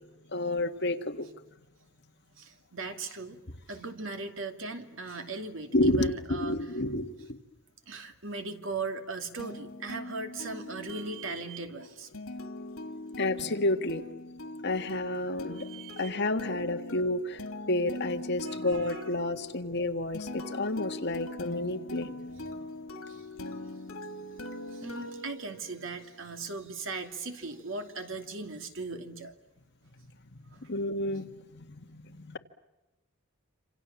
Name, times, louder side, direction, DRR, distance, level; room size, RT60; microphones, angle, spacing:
voice 1, 0.3-1.3 5.7-7.4 13.2-14.0 14.6-15.7 16.0-17.4 17.7-22.3 30.6-32.4, left 1 dB, 55° left, 6 dB, 1.8 m, -30 dB
voice 2, 2.4-3.4 3.7-6.7 7.9-12.1 15.5-16.2 18.4-19.0 22.3-22.4 23.1-23.3 24.6-29.3 30.5-30.6, right 3 dB, 65° right, 5 dB, 2.8 m, -38 dB
sound 1, 9.4-26.1, left 2 dB, 85° left, 2.4 m, -42 dB
27.5 x 27.0 x 7.3 m, 1.1 s
head